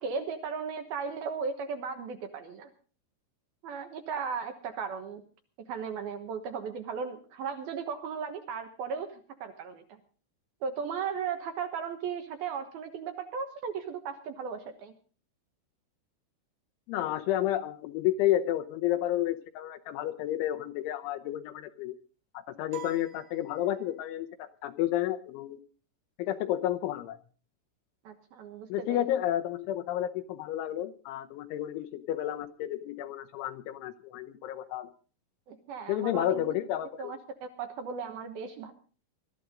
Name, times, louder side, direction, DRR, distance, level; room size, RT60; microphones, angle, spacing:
voice 1, 0.0-2.7 3.6-5.2 5.6-10.0 10.6-14.9 28.0-29.1 35.5-36.6 37.0-38.7, right 6 dB, 65° right, 6 dB, 2.5 m, -36 dB
voice 2, 16.9-22.0 22.3-25.6 26.2-27.2 28.7-34.9 35.9-37.1, left 12 dB, 80° left, 7 dB, 3.1 m, -31 dB
sound 1, 22.7-24.2, right 9 dB, 85° right, 4.7 m, -47 dB
22.5 x 13.5 x 3.8 m, 0.38 s
omnidirectional pair, 5.8 m